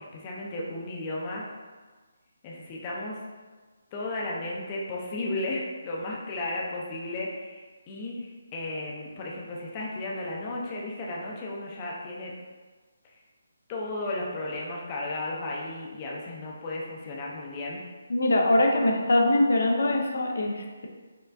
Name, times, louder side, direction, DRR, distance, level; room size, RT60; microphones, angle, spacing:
voice 1, 0.1-1.5 2.4-3.2 3.9-12.3 13.0-13.2 13.7-17.8, left 2 dB, 25° left, -3 dB, 0.5 m, -34 dB
voice 2, 18.1-20.9, left 1 dB, 75° left, 1 dB, 0.5 m, -23 dB
4.3 x 2.3 x 2.5 m, 1.4 s
hypercardioid pair, 160°, 0 cm